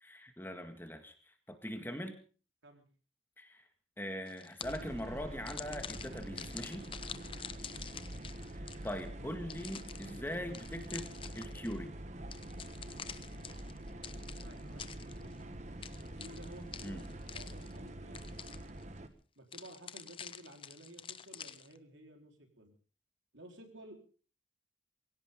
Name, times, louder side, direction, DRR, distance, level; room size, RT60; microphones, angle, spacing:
voice 1, 0.0-2.2 3.4-3.6 4.0-6.9 8.5-11.9 16.8-17.0, equal, 10° left, 6 dB, 1.9 m, -42 dB
sound 1, 4.3-5.0 5.5-9.0 9.5-11.8 12.3-15.4 15.8-17.9 18.1-18.8 19.5-21.8, left 8 dB, 30° left, 0.8 m, -48 dB
sound 2, 4.6-19.1, right 1 dB, 40° right, 1.5 m, -46 dB
voice 2, 14.4-15.4 16.0-17.0 17.3-18.6 19.4-22.7 23.3-24.0, right 1 dB, 80° right, 4 dB, 4.2 m, -54 dB
23.0 x 16.5 x 3.7 m, 0.38 s
head